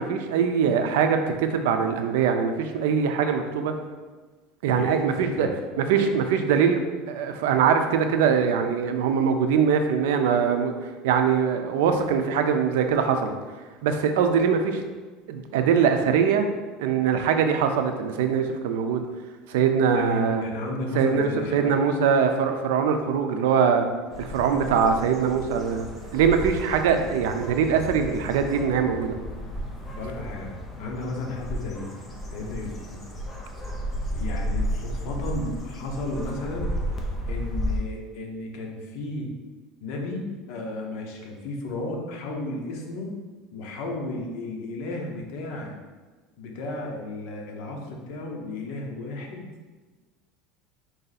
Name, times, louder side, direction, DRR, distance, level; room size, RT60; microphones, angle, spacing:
voice 1, 0.0-3.7 4.6-5.5 5.8-6.8 7.1-13.3 13.8-14.8 15.3-16.5 16.8-19.1 19.5-20.4 20.9-23.8 24.2-25.9 26.1-29.2, right 6 dB, 85° right, 6 dB, 0.5 m, -22 dB
voice 2, 4.7-5.5 19.9-21.8 30.0-30.5 30.8-31.9 32.3-33.2 34.1-36.7 37.3-39.3 39.8-43.2 43.5-45.7 46.4-49.5, left 2 dB, 55° left, 0 dB, 0.9 m, -33 dB
sound 1, 24.1-37.8, equal, 10° left, 0.6 m, -33 dB
4.7 x 2.7 x 4.0 m, 1.3 s
cardioid pair, 165°, 0 cm